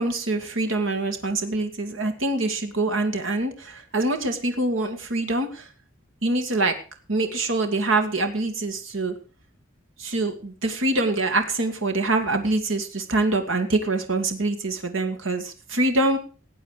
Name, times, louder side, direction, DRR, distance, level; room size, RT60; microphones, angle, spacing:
voice 1, 0.0-5.7 6.2-6.8 7.1-9.1 10.0-16.2, right 2 dB, 80° right, 6 dB, 2.1 m, -25 dB
18.5 x 8.9 x 4.9 m, 0.37 s
head